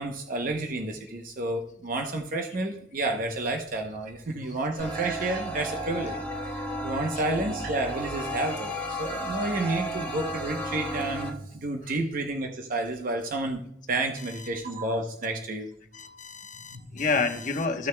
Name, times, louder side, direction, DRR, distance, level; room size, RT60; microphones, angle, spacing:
voice 1, 0.0-6.2 6.5-13.6 13.9-15.7 16.7-16.9, right 2 dB, 50° right, 3 dB, 0.8 m, -30 dB
sound 1, 4.8-11.3, right 1 dB, 10° left, 1.5 m, -33 dB
voice 2, 15.9-17.9, left 4 dB, 45° left, 5 dB, 1.0 m, -29 dB
14.5 x 6.4 x 2.2 m, 0.72 s
head